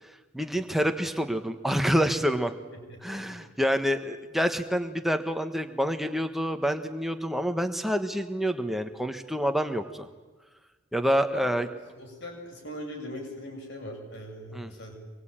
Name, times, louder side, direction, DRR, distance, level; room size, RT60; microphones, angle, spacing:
voice 1, 0.0-2.5 3.0-10.1 10.9-11.7 14.5-14.7, equal, ahead, 7 dB, 1.4 m, -27 dB
voice 2, 2.9-3.4 11.3-11.6 12.0-14.9, equal, 55° left, 2 dB, 7.1 m, -40 dB
25.5 x 22.0 x 9.0 m, 1.3 s
head